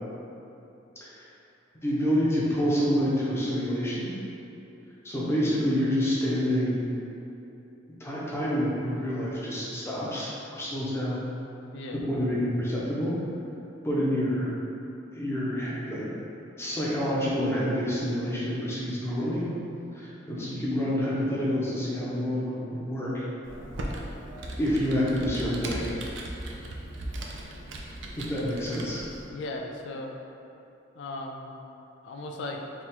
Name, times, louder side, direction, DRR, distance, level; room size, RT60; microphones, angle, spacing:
voice 1, 1.8-4.1 5.0-6.8 8.0-11.2 11.9-13.2 13.8-14.5 15.1-16.0 16.6-19.5 19.9-23.2 24.6-25.9 28.2-29.0, equal, 15° left, -7 dB, 0.7 m, -28 dB
Computer keyboard, 23.4-29.2, right 1 dB, 80° right, 0.5 m, -38 dB
voice 2, 29.3-30.2 30.9-31.5 32.0-32.6, left 2 dB, 70° left, 2 dB, 0.4 m, -37 dB
3.5 x 2.4 x 4.3 m, 2.9 s
head